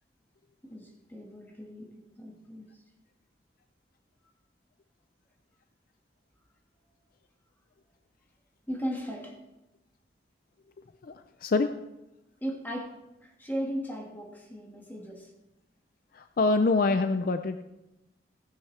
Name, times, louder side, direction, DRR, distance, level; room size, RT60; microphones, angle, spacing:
voice 1, 0.6-2.7 8.7-9.4 12.4-12.9 13.2-15.3, equal, 10° left, -1 dB, 1.7 m, -37 dB
voice 2, 11.0-11.7 16.1-17.6, left 3 dB, 55° left, 8 dB, 0.4 m, -25 dB
15.5 x 10.5 x 3.2 m, 0.96 s
head